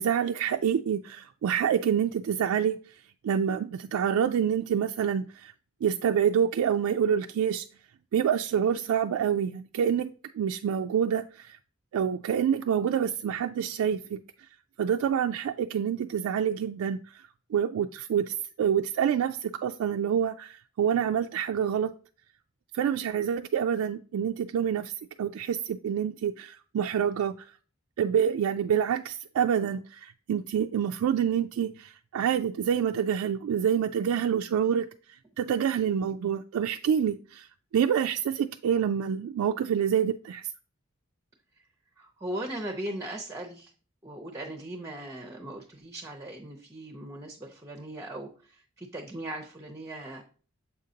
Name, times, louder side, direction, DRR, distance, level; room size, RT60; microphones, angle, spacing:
voice 1, 0.0-2.8 3.2-5.5 5.8-7.7 8.1-11.6 11.9-14.2 14.8-17.0 17.5-21.9 22.7-24.9 25.2-27.4 28.0-34.9 35.4-37.5 37.7-40.5, right 8 dB, 90° right, 0.3 m, -27 dB
voice 2, 42.0-43.7 44.0-50.2, right 1 dB, 15° right, 0.5 m, -38 dB
7.0 x 5.1 x 2.7 m
head